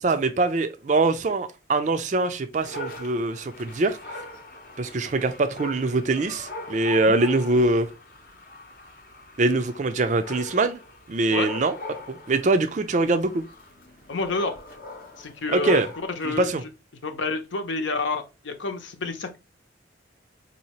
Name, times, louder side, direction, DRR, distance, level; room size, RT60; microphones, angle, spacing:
voice 1, 0.0-4.0 4.8-7.9 9.4-10.8 11.1-11.7 12.1-13.4 15.5-15.9 16.2-16.6, right 2 dB, 40° right, 0.4 m, -23 dB
Dog, 2.5-16.3, left 2 dB, 45° left, 0.7 m, -41 dB
voice 2, 14.1-14.6 15.2-15.8 16.2-16.5 17.0-19.4, left 3 dB, 75° left, 0.8 m, -28 dB
4.1 x 2.8 x 2.9 m
head